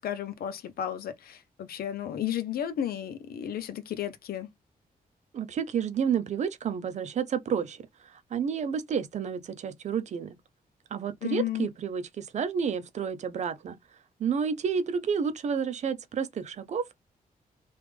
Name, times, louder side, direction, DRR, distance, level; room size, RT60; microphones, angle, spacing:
voice 1, 0.0-4.5 11.2-11.7, left 10 dB, 90° left, 0.6 m, -33 dB
voice 2, 5.3-10.4 10.9-13.8 14.2-16.9, right 7 dB, 50° right, 0.5 m, -30 dB
3.4 x 2.4 x 3.2 m
wide cardioid pair, 180°, 15 cm